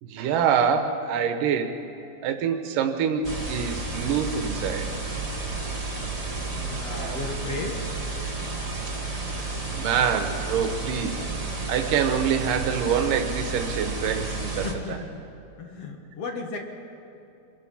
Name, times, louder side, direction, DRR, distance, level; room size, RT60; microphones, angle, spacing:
voice 1, 0.0-1.8 2.2-4.9 7.0-7.2 8.2-8.3 9.4-11.2 11.7-15.0, right 7 dB, 70° right, 7 dB, 2.7 m, -26 dB
sound 1, 3.2-14.7, right 3 dB, 15° right, 1.2 m, -32 dB
voice 2, 6.5-7.9 14.6-15.2 15.6-16.6, left 3 dB, 50° left, 3 dB, 2.2 m, -35 dB
26.0 x 22.5 x 5.7 m, 2.6 s
omnidirectional pair, 4.3 m